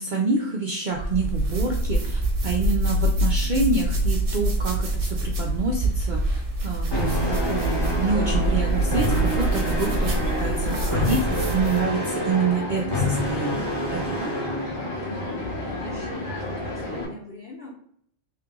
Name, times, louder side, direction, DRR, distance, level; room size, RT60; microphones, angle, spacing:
voice 1, 0.0-7.2 7.5-14.3, right 4 dB, 65° right, 0 dB, 0.5 m, -27 dB
sound 1, 0.9-11.9, right 1 dB, 50° right, 0.9 m, -25 dB
sound 2, 6.9-14.9, left 1 dB, 25° left, 0.7 m, -29 dB
sound 3, 7.1-17.0, left 1 dB, 75° left, 1.7 m, -31 dB
voice 2, 14.8-17.7, left 2 dB, 50° left, -5 dB, 1.0 m, -43 dB
3.3 x 2.9 x 3.6 m, 0.64 s
omnidirectional pair, 1.4 m